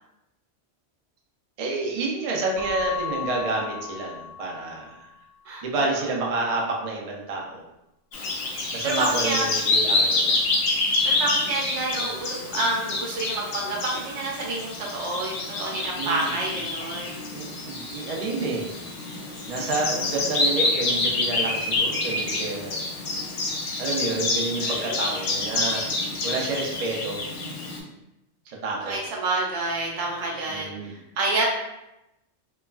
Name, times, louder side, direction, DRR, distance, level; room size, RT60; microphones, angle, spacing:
voice 1, 1.6-5.1 5.6-7.6 8.7-10.4 11.9-12.1 15.9-16.4 17.3-18.6 19.5-22.8 23.8-25.8 26.2-27.2 28.6-29.0 30.5-31.0, right 3 dB, 55° right, -2 dB, 0.4 m, -29 dB
Keyboard (musical) / Bell, 2.5-5.0, left 8 dB, 55° left, 1.3 m, -34 dB
voice 2, 5.5-5.9 8.8-9.5 11.0-17.2 24.6-25.1 28.8-31.4, right 2 dB, 75° right, -2 dB, 1.0 m, -29 dB
Bird vocalization bird call bird song, 8.1-27.8, left 2 dB, 90° left, 1.0 m, -27 dB
3.0 x 2.2 x 2.3 m, 0.91 s
omnidirectional pair, 1.2 m